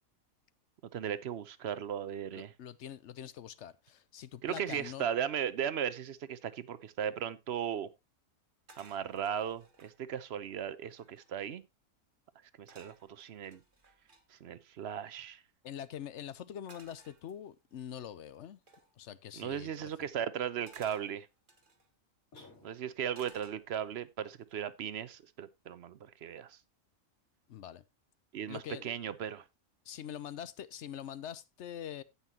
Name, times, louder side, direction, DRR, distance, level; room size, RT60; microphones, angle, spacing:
voice 1, 0.9-2.5 4.4-7.9 8.8-11.6 12.6-13.6 14.3-15.4 19.4-21.3 22.6-26.6 28.3-29.4, right 9 dB, 55° right, 0.8 m, -37 dB
voice 2, 2.3-5.1 15.6-18.6 19.0-20.1 27.5-27.8 28.5-28.9 29.9-32.0, left 10 dB, 60° left, 0.9 m, -44 dB
sound 1, 8.7-10.0 10.6-10.7 10.8-11.5 12.7-14.2 16.7-17.8 18.7-18.9 20.7-21.9 23.1-24.0 24.4-24.8, right 3 dB, 35° right, 1.6 m, -59 dB
sound 2, 22.3-23.2, left 3 dB, 75° left, 2.8 m, -57 dB
16.5 x 5.8 x 2.8 m
omnidirectional pair, 1.5 m